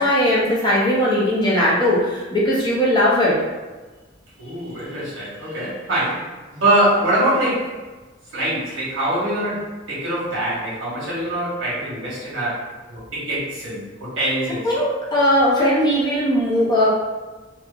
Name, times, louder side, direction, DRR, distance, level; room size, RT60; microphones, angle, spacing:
voice 1, 0.0-3.3 14.6-16.9, equal, 25° left, -6 dB, 0.6 m, -18 dB
voice 2, 4.4-7.8 8.3-14.7, right 1 dB, 80° right, -7 dB, 1.1 m, -23 dB
2.7 x 2.0 x 2.4 m, 1.3 s
head